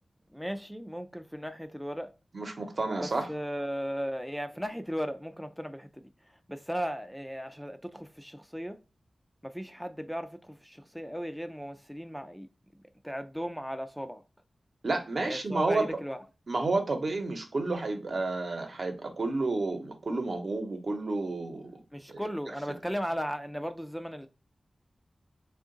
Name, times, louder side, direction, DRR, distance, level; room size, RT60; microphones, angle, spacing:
voice 1, 0.3-2.1 3.0-8.8 9.4-12.5 12.7-14.2 15.2-16.2 21.9-24.3, equal, ahead, 0.4 m, -36 dB
voice 2, 2.3-3.3 14.8-15.9 16.5-21.8 22.1-22.2, right 3 dB, 65° right, 0.9 m, -31 dB
3.5 x 2.4 x 3.8 m
wide cardioid pair, 65°, 0 cm